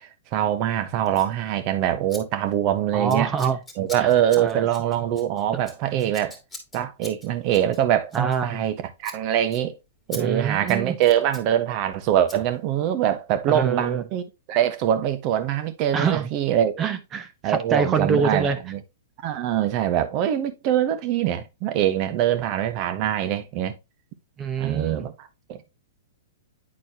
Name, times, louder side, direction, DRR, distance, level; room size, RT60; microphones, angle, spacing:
voice 1, 0.0-3.3 3.8-6.4 6.7-9.7 10.1-14.2 14.5-16.8 17.4-18.8 19.2-23.8 24.6-25.7, right 11 dB, 40° right, 1.1 m, -23 dB
Scissors, 1.1-1.3 2.1-2.2 2.5-2.7 3.1-8.7 9.0-9.2 9.5-9.6 10.1-10.2 10.5-11.5 12.3-12.4, left 2 dB, 5° left, 2.3 m, -43 dB
voice 2, 2.9-3.6 4.0-4.1 4.4-4.6 5.9-6.1 8.1-8.6 10.2-11.0 13.5-14.0 15.9-16.3 16.8-18.6 24.4-25.1, right 6 dB, 25° right, 0.9 m, -25 dB
9.6 x 4.2 x 2.8 m
hypercardioid pair, 120°, 0 cm